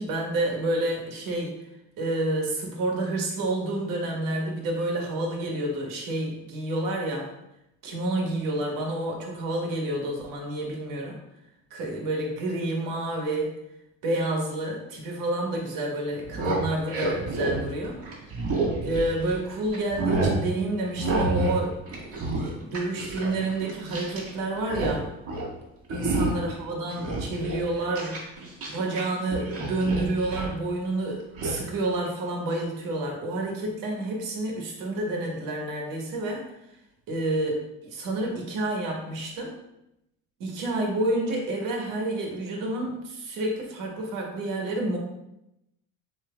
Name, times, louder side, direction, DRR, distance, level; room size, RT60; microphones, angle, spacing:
voice 1, 0.0-1.5 2.0-7.3 7.8-11.2 11.7-13.5 14.0-18.3 18.8-25.0 25.9-28.2 28.7-36.5 37.1-37.5 37.8-39.5 40.4-45.0, right 2 dB, 70° right, 0 dB, 1.4 m, -29 dB
sound 1, 16.1-19.4 19.7-20.4 21.0-21.6 21.8-24.3 24.6-25.0 25.2-25.5 25.9-26.5 26.9-29.0 29.3-30.5 31.4-31.6, right 2 dB, 40° right, 1.5 m, -29 dB
7.4 x 3.1 x 2.2 m, 0.85 s
cardioid pair, 125°, 34 cm